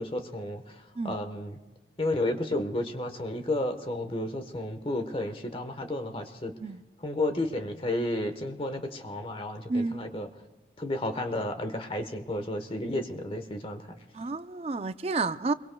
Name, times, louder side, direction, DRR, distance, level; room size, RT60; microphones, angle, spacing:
voice 1, 0.0-1.6 2.0-6.5 7.0-10.3 10.8-14.0, left 1 dB, 30° left, 7 dB, 1.2 m, -32 dB
voice 2, 9.7-10.0 14.1-15.5, right 3 dB, 35° right, 12 dB, 0.4 m, -30 dB
26.5 x 22.5 x 2.3 m, 1.1 s
head